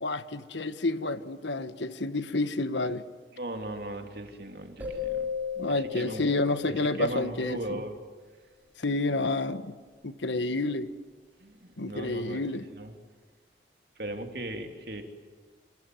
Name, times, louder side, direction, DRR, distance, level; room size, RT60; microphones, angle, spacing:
voice 1, 0.0-3.0 5.6-7.8 8.8-9.8 10.0-10.9 11.8-12.6, left 2 dB, 80° left, 11 dB, 1.3 m, -29 dB
voice 2, 3.3-5.3 5.7-6.3 6.7-8.0 11.4-12.4 12.7-12.9 14.0-15.0, right 1 dB, 55° right, 4 dB, 3.2 m, -37 dB
sound 1, 4.8-7.4, left 7 dB, 10° right, 4.4 m, -36 dB
29.0 x 25.0 x 7.9 m, 1.5 s
head